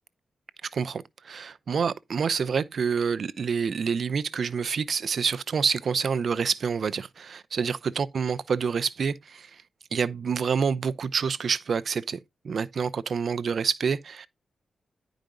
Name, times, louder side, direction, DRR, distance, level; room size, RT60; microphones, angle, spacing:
voice 1, 0.7-9.6 9.9-12.2 12.4-14.3, right 6 dB, 65° right, 0.7 m, -27 dB
10.5 x 5.1 x 3.8 m
cardioid pair, 55°, 0 cm